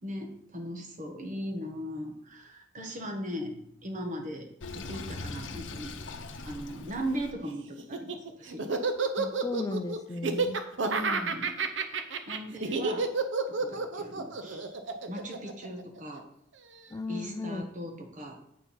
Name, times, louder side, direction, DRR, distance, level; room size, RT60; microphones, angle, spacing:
voice 1, 0.0-4.5 4.7-6.0 6.4-8.6 10.8-11.5 12.3-13.1 13.5-14.8 15.1-16.2 17.1-18.4, equal, 45° right, 4 dB, 1.3 m, -38 dB
Sink (filling or washing), 4.6-7.3, left 3 dB, 90° left, 0.7 m, -40 dB
Laughter, 7.8-16.2, right 4 dB, 80° right, 0.8 m, -30 dB
voice 2, 9.2-10.6 16.9-17.7, left 2 dB, 20° left, 7 dB, 0.4 m, -35 dB
8.2 x 4.5 x 5.5 m, 0.75 s
head